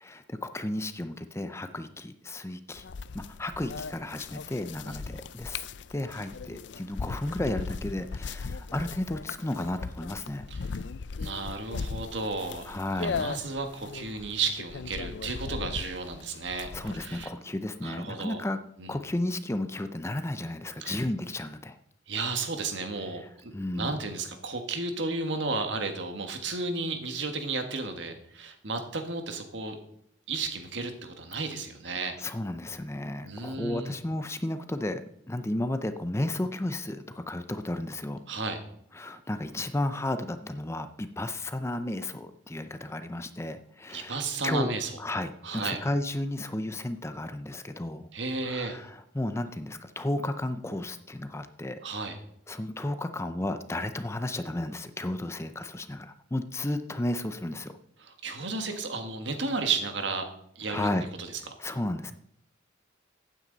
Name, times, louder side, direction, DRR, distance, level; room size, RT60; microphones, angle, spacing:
voice 1, 0.0-2.9 3.1-5.6 5.9-10.5 12.7-13.3 16.6-18.6 18.9-21.8 23.5-24.0 32.0-35.0 35.3-38.2 38.9-44.7 45.0-48.1 48.4-51.8 52.5-57.8 60.7-61.1 61.6-62.1, left 1 dB, 15° left, 10 dB, 0.5 m, -33 dB
sound 1, 2.8-17.3, left 5 dB, 65° left, 0.4 m, -38 dB
voice 2, 11.2-12.7 13.0-17.3 17.8-18.4 18.8-19.0 20.8-21.0 22.1-29.8 30.3-32.1 33.2-34.0 38.3-38.6 43.9-44.9 45.4-45.8 48.1-48.8 51.8-52.2 58.0-60.2 60.5-60.9 61.2-61.3, right 3 dB, 70° right, 6 dB, 1.7 m, -33 dB
15.0 x 9.2 x 4.0 m, 0.71 s
head